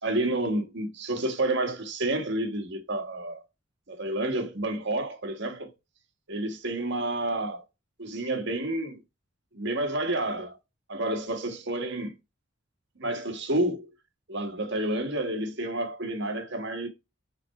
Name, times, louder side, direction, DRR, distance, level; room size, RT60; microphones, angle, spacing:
voice 1, 0.0-3.4 3.9-5.7 6.3-7.6 8.0-9.0 9.5-10.6 10.9-12.1 13.0-13.9 14.3-16.9, right 1 dB, 60° right, 1.6 m, -29 dB
6.1 x 3.9 x 4.6 m
head